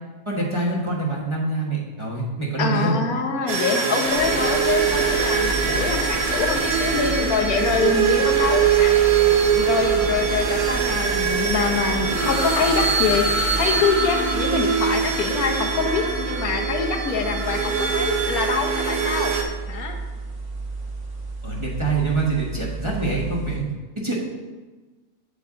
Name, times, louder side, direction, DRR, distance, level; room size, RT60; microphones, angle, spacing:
voice 1, 0.2-3.0 21.4-23.6 24.0-24.2, right 3 dB, 20° right, -4 dB, 1.3 m, -25 dB
voice 2, 2.6-9.0 9.5-19.3 19.7-20.0, left 5 dB, 80° left, 2 dB, 1.5 m, -25 dB
sound 1, 3.5-19.4, right 6 dB, 85° right, 1.5 m, -23 dB
sound 2, 4.0-13.9, right 1 dB, 40° right, 1.8 m, -33 dB
sound 3, 5.1-23.6, right 3 dB, 55° right, 1.9 m, -33 dB
8.2 x 7.7 x 3.8 m, 1.3 s
omnidirectional pair, 1.5 m